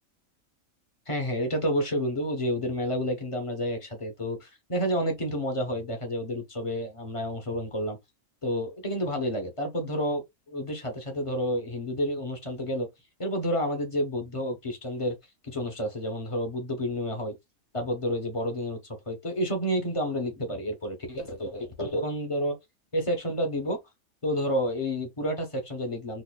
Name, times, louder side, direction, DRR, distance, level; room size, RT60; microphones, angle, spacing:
voice 1, 1.1-8.0 8.4-12.9 13.2-15.2 15.4-17.4 17.7-18.8 19.1-22.6 22.9-23.8 24.2-26.2, equal, 25° left, 1.0 m, -30 dB
4.2 x 2.8 x 2.3 m
omnidirectional pair, 1.4 m